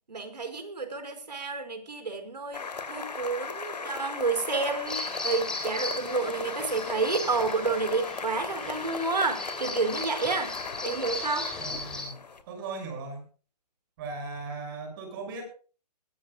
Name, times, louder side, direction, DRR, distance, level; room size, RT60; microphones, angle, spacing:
voice 1, 0.1-2.6 2.9-10.6 10.8-11.5, right 4 dB, 90° right, 8 dB, 4.9 m, -30 dB
sound 1, 2.5-12.4, left 4 dB, 85° left, 3.0 m, -37 dB
Bird vocalization bird call bird song, 4.9-12.0, left 2 dB, 5° left, 4.3 m, -38 dB
voice 2, 11.6-12.2 12.5-13.2 14.0-15.4, right 3 dB, 30° right, 4 dB, 6.7 m, -38 dB
21.5 x 14.0 x 2.3 m, 0.37 s
hypercardioid pair, 155°, 21 cm